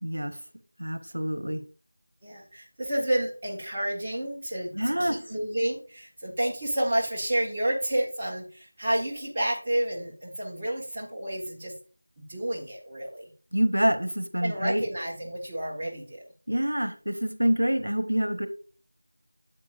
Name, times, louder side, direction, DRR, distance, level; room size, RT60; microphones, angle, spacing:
voice 1, 0.0-0.4 0.8-1.6 4.7-5.2 13.5-14.8 16.5-18.5, equal, 80° right, 9 dB, 1.1 m, -26 dB
voice 2, 2.2-11.7 12.3-13.3 14.4-16.3, right 1 dB, 15° right, -5 dB, 1.3 m, -30 dB
8.9 x 7.6 x 2.5 m, 0.38 s
figure-of-eight pair, 175°, 0 cm